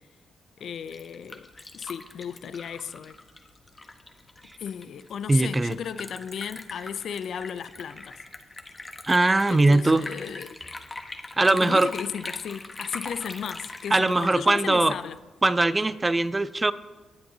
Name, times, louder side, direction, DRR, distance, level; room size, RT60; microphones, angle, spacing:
voice 1, 0.6-1.5 1.7-3.2 4.6-8.2 9.5-10.6 11.5-15.2, left 8 dB, 70° left, 0.4 m, -35 dB
Liquid, 0.6-15.2, left 2 dB, 25° left, 1.1 m, -42 dB
voice 2, 5.3-5.7 9.1-10.1 11.4-11.9 13.9-15.0 15.4-16.7, right 2 dB, 25° right, 0.5 m, -21 dB
19.0 x 7.7 x 2.8 m
supercardioid pair, 55°, 0 cm